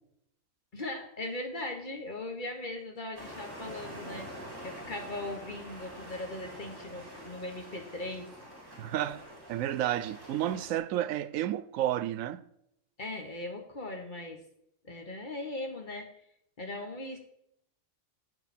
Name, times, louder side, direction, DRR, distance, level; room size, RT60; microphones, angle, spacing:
voice 1, 0.7-4.3 4.6-8.3 13.0-14.4 14.8-16.1 16.6-17.2, left 2 dB, 40° left, 1.4 m, -39 dB
sound 1, 3.1-10.8, equal, 15° right, 3.8 m, -46 dB
voice 2, 8.8-9.2 9.5-12.4, right 12 dB, 85° right, 1.0 m, -31 dB
16.5 x 6.4 x 4.4 m
omnidirectional pair, 1.3 m